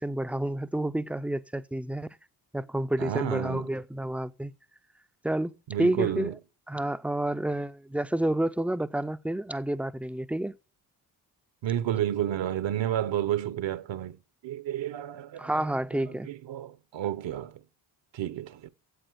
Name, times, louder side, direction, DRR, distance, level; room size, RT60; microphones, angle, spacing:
voice 1, 0.0-2.1 2.5-4.5 5.2-6.4 6.7-10.6 15.4-16.3, right 1 dB, 5° right, 0.4 m, -29 dB
voice 2, 3.0-3.6 5.7-6.3 11.6-14.2 14.4-15.5 16.3-17.6 18.1-18.7, right 11 dB, 65° right, 1.0 m, -31 dB
8.1 x 7.9 x 7.8 m
supercardioid pair, 55°, 48 cm